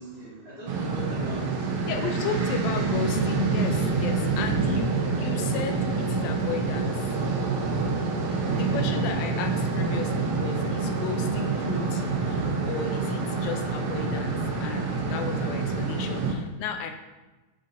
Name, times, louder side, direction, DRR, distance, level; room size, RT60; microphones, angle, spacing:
voice 1, 0.0-2.2 8.2-8.6, right 1 dB, 45° left, -9 dB, 0.5 m, -42 dB
sound 1, 0.7-16.3, right 4 dB, 75° right, 1.4 m, -27 dB
voice 2, 1.9-7.1 8.5-16.9, left 6 dB, 80° left, 6 dB, 1.6 m, -34 dB
6.5 x 3.8 x 4.0 m, 1.2 s
omnidirectional pair, 3.6 m